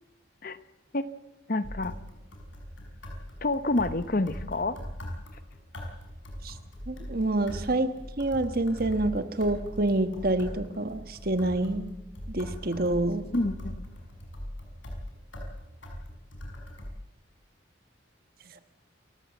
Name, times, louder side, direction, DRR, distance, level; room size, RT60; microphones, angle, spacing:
voice 1, 1.5-2.0 3.4-4.8 13.3-13.7, left 2 dB, 45° left, 13 dB, 1.0 m, -28 dB
sound 1, 1.6-16.9, equal, 85° left, 5.5 m, -41 dB
voice 2, 6.9-7.9 8.2-11.9 12.3-13.2, right 2 dB, 50° right, 10 dB, 1.3 m, -27 dB
28.0 x 15.0 x 7.2 m, 0.96 s
head